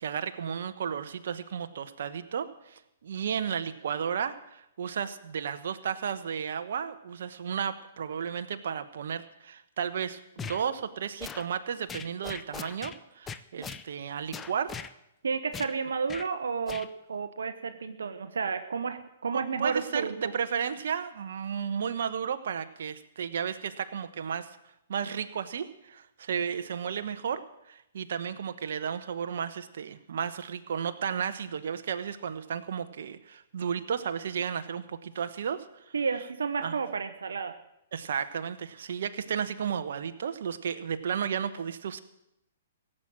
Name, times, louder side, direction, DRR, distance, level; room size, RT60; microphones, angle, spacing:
voice 1, 0.0-14.7 19.3-24.5 24.9-27.4 27.7-35.9 36.6-36.8 37.9-42.0, right 7 dB, 65° right, 9 dB, 1.1 m, -33 dB
sound 1, 10.4-10.6 11.2-11.5 11.9-13.0 13.3-13.8 14.3-14.9 15.5-15.7 16.1-16.3 16.7-16.9, left 6 dB, 15° left, 0.6 m, -40 dB
voice 2, 15.2-20.3 35.9-37.6, right 5 dB, 80° right, 9 dB, 1.0 m, -31 dB
16.5 x 7.7 x 8.9 m, 0.83 s
hypercardioid pair, 130°, 0 cm